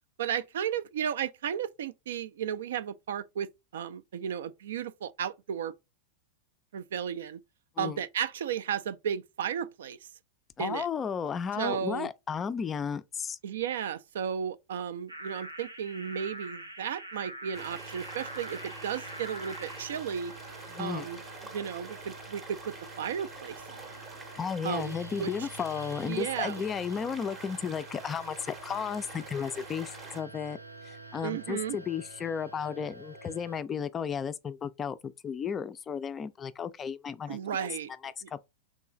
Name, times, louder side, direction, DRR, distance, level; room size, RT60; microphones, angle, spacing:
voice 1, 0.2-5.7 6.7-7.4 7.8-10.1 10.6-10.9 11.5-12.1 13.4-20.3 20.8-24.0 24.6-25.3 26.0-26.6 31.2-31.8 37.3-37.9 38.2-38.3, right 8 dB, 60° right, 0.3 m, -34 dB
voice 2, 10.6-13.4 20.7-21.1 24.4-30.6 30.8-37.7 38.0-38.4, left 7 dB, 25° left, 0.3 m, -34 dB
sound 1, 15.1-19.9, right 1 dB, 85° right, 0.7 m, -44 dB
sound 2, 17.5-33.6, right 3 dB, 90° left, 0.4 m, -48 dB
sound 3, 17.5-30.2, right 3 dB, 15° right, 0.7 m, -47 dB
3.7 x 3.0 x 3.6 m
figure-of-eight pair, 90°, 0 cm